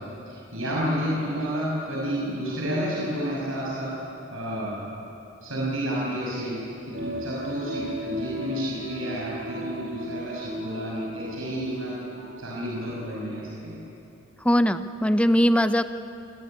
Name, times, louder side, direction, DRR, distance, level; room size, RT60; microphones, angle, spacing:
voice 1, 0.0-4.0 4.3-4.9 5.4-12.0 12.4-13.8, equal, 85° right, -5 dB, 6.1 m, -30 dB
sound 1, 6.9-13.2 13.5-13.6, equal, 55° right, 4.1 m, -36 dB
voice 2, 14.4-15.8, equal, 5° left, 10 dB, 0.7 m, -20 dB
28.5 x 17.5 x 10.0 m, 2.8 s
head